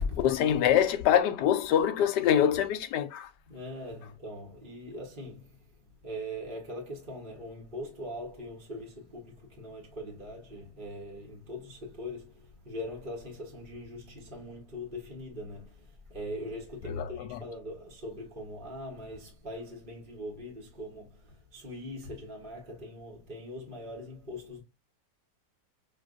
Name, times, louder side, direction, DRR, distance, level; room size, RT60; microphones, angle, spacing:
voice 1, 0.2-3.3 16.9-17.4, left 9 dB, 75° left, 1.1 m, -25 dB
voice 2, 3.5-5.7 6.0-24.6, left 1 dB, 35° right, 1.1 m, -41 dB
5.8 x 2.5 x 2.4 m
omnidirectional pair, 1.9 m